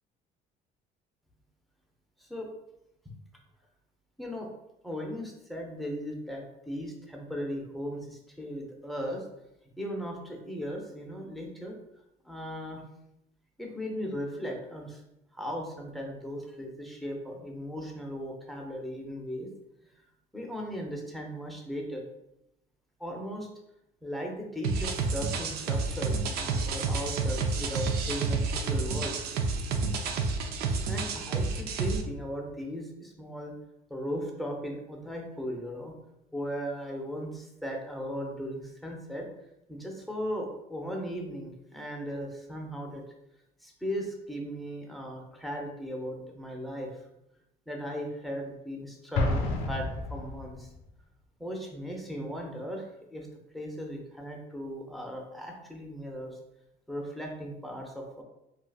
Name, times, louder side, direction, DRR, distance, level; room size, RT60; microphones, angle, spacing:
voice 1, 4.2-4.5 4.8-9.2 9.8-11.8 12.2-12.8 13.6-15.0 15.3-19.5 20.3-22.0 23.0-23.5 24.0-29.2 30.9-33.5 33.9-36.0 36.3-39.3 39.7-43.0 43.6-46.9 47.7-50.7 51.4-53.3 53.5-56.4 56.9-58.2, equal, ahead, 0 dB, 0.7 m, -37 dB
sound 1, 24.6-32.0, right 4 dB, 70° right, 0.5 m, -30 dB
Explosion, 49.1-50.7, left 2 dB, 85° left, 0.6 m, -30 dB
3.7 x 2.4 x 2.3 m, 0.84 s
cardioid pair, 110°, 17 cm